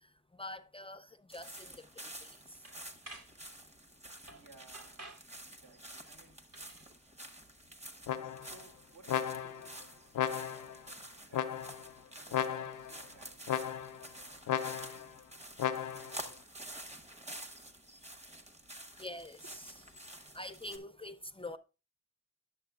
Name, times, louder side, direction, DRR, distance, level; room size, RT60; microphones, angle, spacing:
voice 1, 0.0-2.7 19.0-19.4 20.0-21.6, left 1 dB, 20° left, 0.4 m, -46 dB
sound 1, 1.3-20.8, right 1 dB, 20° right, 0.9 m, -50 dB
sound 2, 1.6-1.7 2.1-2.3 2.7-3.3 4.3-4.5 4.7-5.3 6.5-6.9, right 2 dB, 50° right, 1.7 m, -51 dB
voice 2, 4.3-5.0 5.5-6.4 8.4-10.1 10.3-10.9 11.2-11.6 12.1-15.3 15.8-16.5 19.4-19.5, right 3 dB, 75° right, 2.3 m, -61 dB
sound 3, 8.1-8.6 9.1-9.7 10.1-10.8 11.3-11.9 12.3-13.0 13.5-14.1 14.5-15.1 15.6-16.2, left 9 dB, 75° left, 0.5 m, -35 dB
10.5 x 7.0 x 2.3 m
wide cardioid pair, 110°, 31 cm